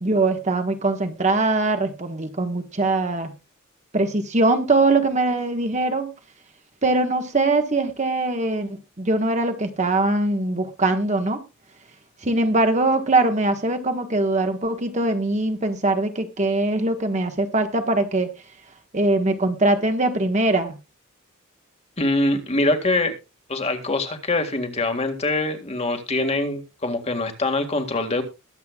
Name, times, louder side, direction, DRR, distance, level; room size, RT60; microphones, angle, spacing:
voice 1, 0.0-3.3 3.9-6.1 6.8-11.4 12.2-18.3 18.9-20.8, right 2 dB, 35° right, 6 dB, 1.4 m, -22 dB
voice 2, 22.0-23.1 23.5-28.2, left 2 dB, 30° left, 6 dB, 1.9 m, -24 dB
21.5 x 8.0 x 2.4 m, 0.27 s
head